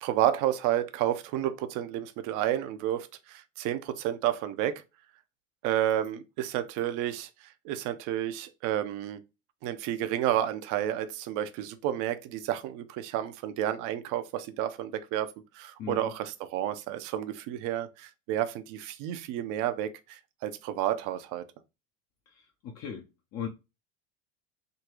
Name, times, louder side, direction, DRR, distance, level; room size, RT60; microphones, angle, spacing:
voice 1, 0.0-4.8 5.6-9.2 9.6-21.5, right 12 dB, 55° right, 0.7 m, -31 dB
voice 2, 15.8-16.1 22.3-23.5, left 8 dB, 40° left, 0.6 m, -39 dB
3.8 x 2.3 x 2.9 m
supercardioid pair, 105°, 39 cm